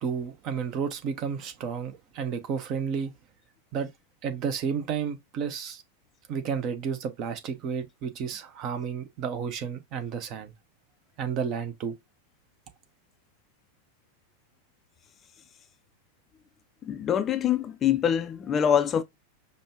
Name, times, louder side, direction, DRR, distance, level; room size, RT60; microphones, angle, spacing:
voice 1, 0.0-3.1 3.7-3.9 4.2-5.8 6.3-10.5 11.2-11.9, right 6 dB, 40° right, 0.8 m, -31 dB
voice 2, 16.8-19.0, left 9 dB, 25° left, 0.4 m, -24 dB
5.2 x 2.2 x 2.9 m
figure-of-eight pair, 90°, 0 cm